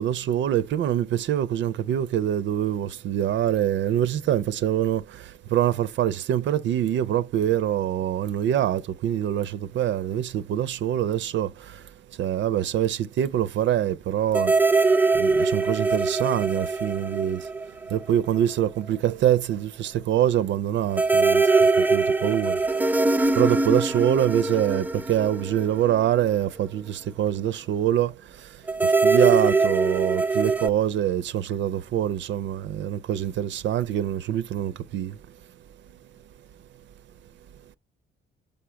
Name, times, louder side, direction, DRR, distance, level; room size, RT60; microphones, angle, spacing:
voice 1, 0.0-11.8 12.2-14.5 15.2-17.5 17.9-21.4 21.8-22.6 23.4-28.5 28.8-35.2, right 11 dB, 70° right, 0.5 m, -25 dB
sound 1, 14.3-18.1 18.4-18.5 20.9-26.3 28.7-30.7, right 3 dB, 10° right, 0.4 m, -22 dB
5.4 x 5.0 x 5.7 m
cardioid pair, 90°, 20 cm